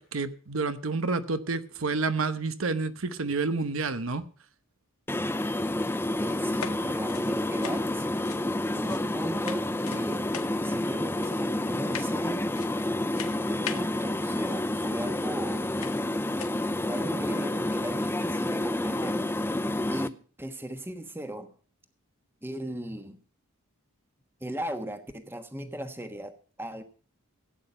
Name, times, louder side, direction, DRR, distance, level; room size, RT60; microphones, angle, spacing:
voice 1, 0.0-4.2, right 3 dB, 70° right, 1.0 m, -29 dB
US Lab background, 5.1-20.1, left 1 dB, 10° left, 0.5 m, -29 dB
voice 2, 6.2-8.1 8.7-10.3 10.6-12.4 13.5-15.7 16.8-19.3 19.9-21.5 22.4-23.2 24.4-26.8, right 1 dB, 10° right, 1.2 m, -37 dB
sound 1, 6.5-9.1 9.4-10.0 10.3-10.8 11.2-11.5 11.9-12.2 12.5-12.9 13.1-13.9 15.1-15.2 15.8-16.0 16.3-16.6, left 7 dB, 75° left, 1.7 m, -40 dB
16.5 x 8.9 x 5.4 m
head